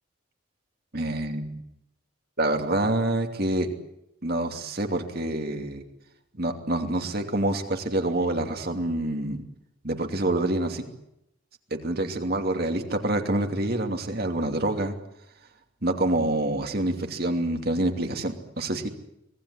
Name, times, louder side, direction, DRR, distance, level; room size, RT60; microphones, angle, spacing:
voice 1, 0.9-1.6 2.4-3.7 4.2-5.8 6.3-9.4 9.8-10.8 11.7-14.9 15.8-18.9, right 1 dB, 50° right, 5 dB, 2.8 m, -27 dB
25.0 x 19.5 x 9.8 m, 0.83 s
head